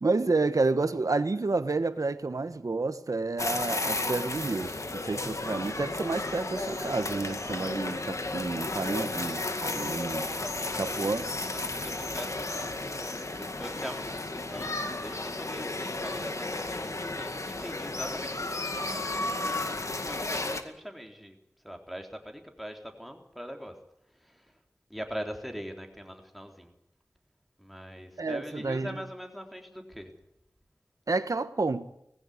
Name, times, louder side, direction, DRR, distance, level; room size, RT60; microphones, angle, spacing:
voice 1, 0.0-10.3 10.8-11.2 28.2-29.0 31.1-31.9, right 3 dB, 80° right, 1.4 m, -30 dB
sound 1, 3.4-20.6, left 2 dB, 60° left, 2.1 m, -33 dB
voice 2, 10.4-10.8 11.5-12.8 13.4-21.4 21.6-23.8 24.1-24.6 24.9-26.7 27.6-30.1, equal, ahead, 3.7 m, -42 dB
20.0 x 16.0 x 9.7 m
wide cardioid pair, 60°, 6 cm